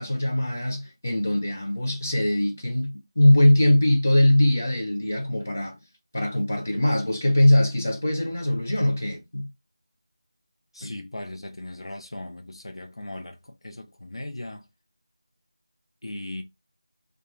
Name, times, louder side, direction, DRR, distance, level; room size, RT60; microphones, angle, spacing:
voice 1, 0.0-5.8 6.1-9.5 10.8-10.9, left 1 dB, 25° left, 0.3 m, -21 dB
voice 2, 10.7-14.7 16.0-16.4, left 1 dB, 70° left, 0.6 m, -38 dB
2.4 x 2.3 x 2.9 m
figure-of-eight pair, 180°, 3 cm